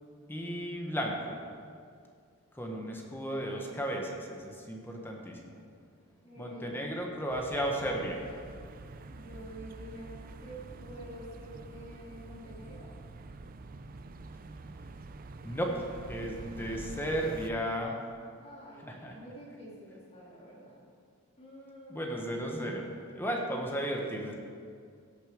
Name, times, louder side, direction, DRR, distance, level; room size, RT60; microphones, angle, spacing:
voice 1, 0.3-1.4 2.5-5.5 6.4-8.2 15.4-17.9 18.8-19.1 21.9-22.8 23.1-24.3, equal, 10° left, 0 dB, 1.2 m, -34 dB
voice 2, 6.2-6.8 9.1-12.9 18.4-20.8 21.4-22.0, right 1 dB, 30° left, -7 dB, 2.5 m, -48 dB
sound 1, 7.3-17.5, right 3 dB, 45° right, 0.5 m, -46 dB
17.5 x 6.7 x 5.2 m, 2.2 s
head